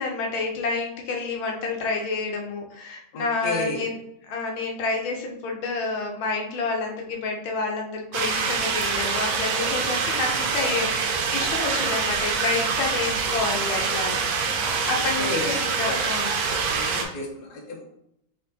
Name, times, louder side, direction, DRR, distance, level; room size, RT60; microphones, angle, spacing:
voice 1, 0.0-4.0 4.3-14.2 14.7-16.4, left 3 dB, 85° left, 1 dB, 1.5 m, -29 dB
voice 2, 3.1-3.8 15.2-15.5 15.8-16.0 16.5-18.0, left 3 dB, 60° left, 0 dB, 1.4 m, -32 dB
sound 1, 8.1-17.0, right 5 dB, 80° right, 1.4 m, -25 dB
4.5 x 3.5 x 2.7 m, 0.76 s
omnidirectional pair, 2.2 m